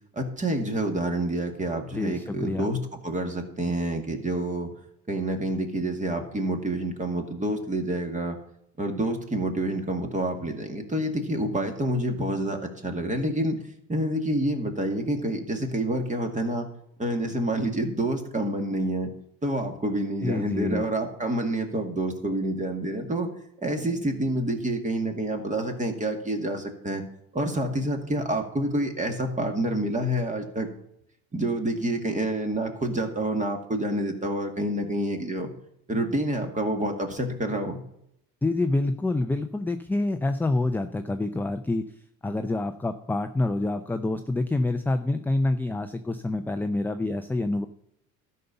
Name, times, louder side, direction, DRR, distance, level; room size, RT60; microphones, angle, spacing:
voice 1, 0.1-4.7 5.1-8.4 8.8-13.6 13.9-16.7 17.0-19.1 19.4-23.3 23.6-27.0 27.3-30.7 31.3-35.5 35.9-37.8, right 1 dB, 20° right, 4 dB, 2.1 m, -28 dB
voice 2, 2.0-2.7 20.2-20.8 38.4-41.8 42.2-47.6, left 2 dB, 5° left, 7 dB, 0.5 m, -27 dB
12.5 x 5.5 x 6.9 m, 0.75 s
cardioid pair, 105°, 35 cm